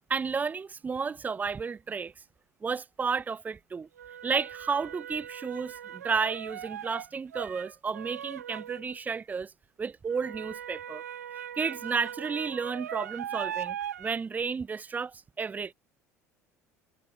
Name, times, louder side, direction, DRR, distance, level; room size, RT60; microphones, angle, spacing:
voice 1, 0.1-2.1 2.6-3.9 4.2-9.5 9.8-11.0 11.6-15.7, right 5 dB, 20° right, 0.5 m, -32 dB
sound 1, 1.1-1.2 4.0-9.0 10.1-14.1, right 10 dB, 75° right, 0.6 m, -39 dB
figure-of-eight pair, 65°, 9 cm